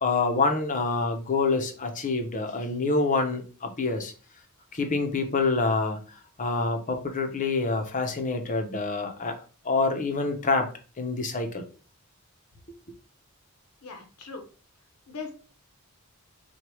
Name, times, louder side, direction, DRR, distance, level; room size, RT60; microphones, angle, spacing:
voice 1, 0.0-4.1 4.7-6.0 6.4-9.3 9.6-10.7 11.0-11.6, left 3 dB, 35° left, 5 dB, 0.7 m, -26 dB
voice 2, 13.8-14.4 15.1-15.3, left 4 dB, 75° left, 3 dB, 0.9 m, -39 dB
4.4 x 2.3 x 4.7 m, 0.38 s
head